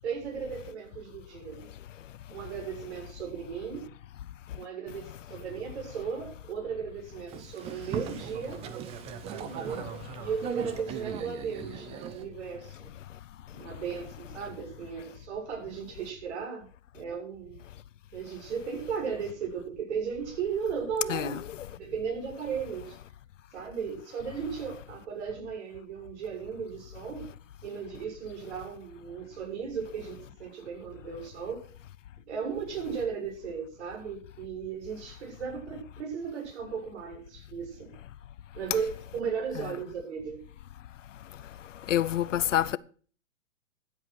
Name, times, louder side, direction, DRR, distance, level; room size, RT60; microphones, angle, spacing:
voice 1, 0.0-1.6 2.3-3.9 4.5-9.9 10.2-12.9 13.5-16.7 16.9-17.6 18.1-21.4 21.7-23.0 23.5-27.3 27.6-31.6 32.3-37.9 38.5-40.4, right 6 dB, 55° right, 7.0 m, -36 dB
Boat Water vehicle, 7.3-12.2, right 8 dB, 15° right, 0.8 m, -39 dB
voice 2, 41.9-42.8, left 11 dB, 65° left, 0.7 m, -26 dB
13.5 x 8.2 x 6.2 m
hypercardioid pair, 150°, 40 cm